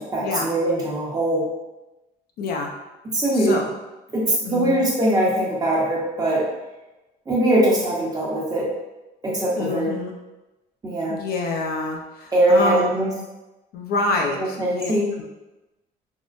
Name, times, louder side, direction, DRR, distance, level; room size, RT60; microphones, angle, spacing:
voice 1, 0.0-1.5 3.1-3.5 4.1-6.4 7.3-8.6 9.2-9.9 10.8-11.1 12.3-13.1 14.4-15.1, right 1 dB, 20° right, -5 dB, 0.9 m, -21 dB
voice 2, 2.4-2.7 3.3-3.7 4.4-4.8 9.6-10.1 11.1-13.1 13.7-14.9, left 3 dB, 65° left, 1 dB, 0.5 m, -26 dB
3.6 x 2.0 x 2.5 m, 1.0 s
cardioid pair, 110°, 17 cm